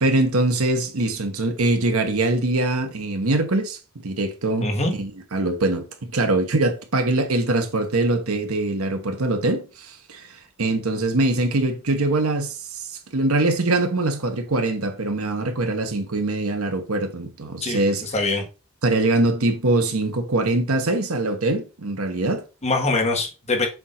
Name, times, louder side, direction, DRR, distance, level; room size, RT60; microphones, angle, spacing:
voice 1, 0.0-3.8 4.0-4.7 5.0-5.8 6.1-12.8 13.1-18.0 18.8-22.4, right 2 dB, 75° right, 1.2 m, -23 dB
voice 2, 4.6-4.9 17.6-18.4 22.6-23.7, left 2 dB, 30° left, 1.4 m, -23 dB
7.1 x 2.7 x 5.7 m
head